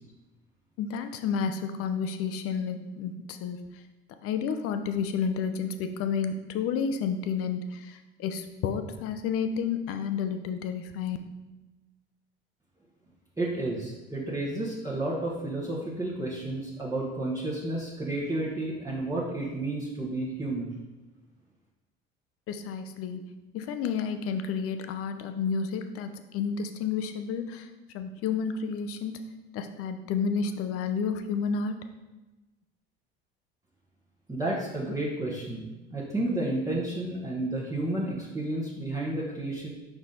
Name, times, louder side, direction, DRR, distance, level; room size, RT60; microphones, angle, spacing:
voice 1, 0.8-3.8 4.2-11.2 22.5-23.2 23.5-27.7 27.9-29.2 29.5-31.8, left 6 dB, 45° left, 8 dB, 0.7 m, -31 dB
voice 2, 13.4-20.8 34.3-35.7 35.9-39.7, right 2 dB, 10° right, -6 dB, 1.2 m, -31 dB
5.4 x 4.8 x 3.9 m, 1.1 s
figure-of-eight pair, 65°, 31 cm